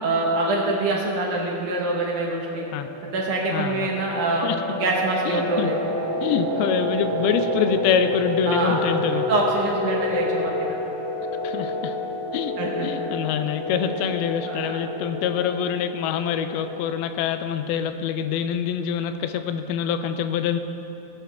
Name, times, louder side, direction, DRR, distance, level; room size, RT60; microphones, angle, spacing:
voice 1, 0.0-2.7 3.1-5.7 8.5-8.8 9.3-10.8 12.6-12.9 14.5-14.8, right 2 dB, 65° right, -2 dB, 2.1 m, -25 dB
sound 1, 2.5-17.0, left 1 dB, 30° right, 3.2 m, -29 dB
voice 2, 3.5-3.9 4.4-4.6 5.3-5.7 6.2-9.2 11.4-11.9 12.3-12.6 12.8-20.6, left 8 dB, 85° left, 9 dB, 2.5 m, -25 dB
19.0 x 11.5 x 2.3 m, 2.8 s
omnidirectional pair, 4.4 m